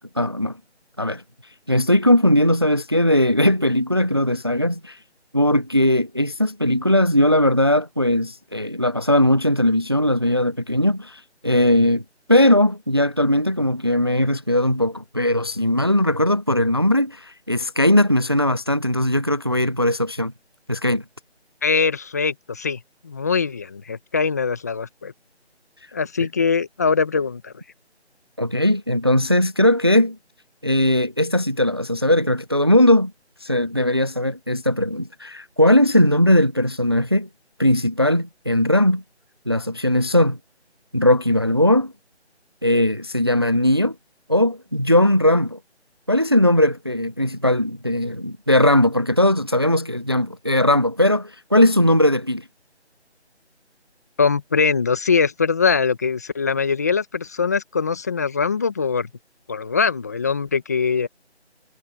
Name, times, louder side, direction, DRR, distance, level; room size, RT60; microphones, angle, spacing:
voice 1, 0.2-0.6 1.0-1.2 1.7-5.0 5.3-12.0 12.3-20.3 20.7-21.0 28.4-30.2 30.6-33.1 33.4-37.3 37.6-39.0 39.5-40.4 40.9-41.9 42.6-44.0 44.3-45.6 46.1-52.4, left 1 dB, 20° right, 0.7 m, -19 dB
voice 2, 21.6-25.1 25.9-27.5 54.2-59.1 59.5-61.1, left 5 dB, 15° left, 1.5 m, -22 dB
figure-of-eight pair, 170°, 34 cm